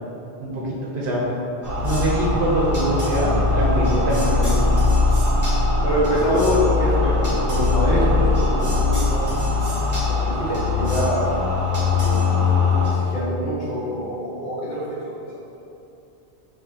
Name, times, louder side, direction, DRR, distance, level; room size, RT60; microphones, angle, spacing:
voice 1, 0.4-1.3 1.8-4.7 9.8-10.0, right 1 dB, 55° right, -5 dB, 0.9 m, -24 dB
sound 1, 1.6-12.9, left 3 dB, 20° right, 0.8 m, -21 dB
voice 2, 5.8-9.2 10.1-11.3 11.9-12.5 12.9-14.8, equal, 45° left, -8 dB, 1.1 m, -25 dB
4.7 x 3.0 x 2.8 m, 2.7 s
omnidirectional pair, 1.1 m